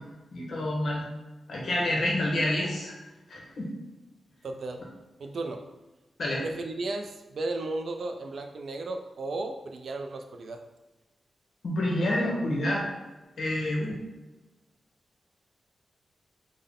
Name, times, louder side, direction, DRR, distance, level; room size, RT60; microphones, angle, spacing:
voice 1, 0.3-1.0 1.5-2.9 3.3-3.7 6.2-6.4 11.6-12.8 13.4-14.0, left 1 dB, 65° left, -2 dB, 0.9 m, -28 dB
voice 2, 4.4-4.9 5.2-5.7 6.4-10.6, right 2 dB, 65° right, 5 dB, 0.3 m, -34 dB
3.6 x 2.1 x 3.6 m, 1.1 s
cardioid pair, 90°, 0 cm